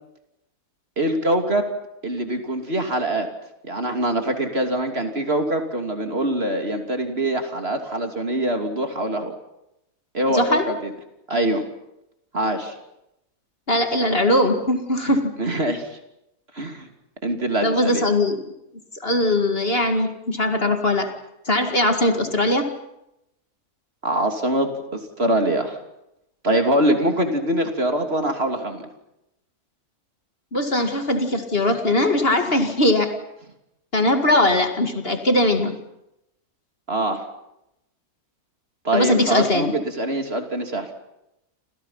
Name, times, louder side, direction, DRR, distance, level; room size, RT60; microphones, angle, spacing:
voice 1, 1.0-1.7 2.0-3.3 3.6-9.3 10.1-10.8 11.3-11.6 12.3-12.7 15.4-15.9 16.5-16.9 17.2-18.0 24.0-25.8 26.4-28.9 36.9-37.2 38.8-40.9, right 1 dB, 40° right, 5 dB, 3.2 m, -23 dB
voice 2, 10.3-10.7 13.7-15.4 17.6-18.4 19.0-21.1 21.5-22.7 30.5-33.2 33.9-35.8 38.9-39.7, left 1 dB, 40° left, 6 dB, 2.4 m, -20 dB
29.5 x 27.5 x 5.8 m, 0.85 s
omnidirectional pair, 1.6 m